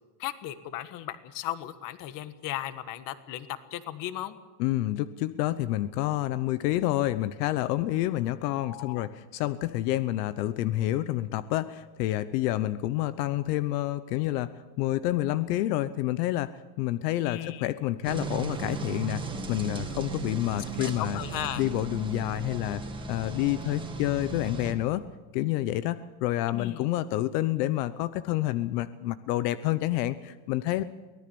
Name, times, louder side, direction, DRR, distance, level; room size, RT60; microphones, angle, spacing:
voice 1, 0.2-4.3 8.6-9.1 17.2-17.7 20.8-21.6 26.5-26.8, left 13 dB, 40° left, 13 dB, 1.5 m, -36 dB
voice 2, 4.6-14.5 14.8-16.5 16.8-19.2 19.5-21.2 21.6-22.8 23.1-25.0 25.3-30.8, left 15 dB, 75° left, 14 dB, 1.0 m, -28 dB
sound 1, 18.0-24.7, right 3 dB, 10° right, 2.2 m, -36 dB
24.0 x 18.0 x 7.0 m, 1.3 s
cardioid pair, 170°, 48 cm